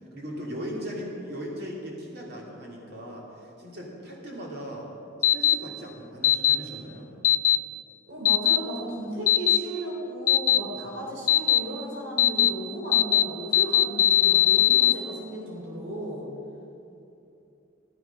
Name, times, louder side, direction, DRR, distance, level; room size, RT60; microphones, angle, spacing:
voice 1, 0.1-4.9 5.3-7.1 10.7-10.9, equal, 55° right, -2 dB, 2.6 m, -38 dB
sound 1, 5.2-5.5 6.2-6.5 7.2-7.6 8.2-8.6 9.3-9.6 10.3-10.6 11.3-11.6 12.2-12.5 12.9-13.2 13.5-14.9, left 12 dB, 45° left, 0.4 m, -19 dB
voice 2, 8.1-16.3, equal, 75° right, -3 dB, 3.5 m, -35 dB
14.0 x 13.5 x 5.9 m, 2.8 s
head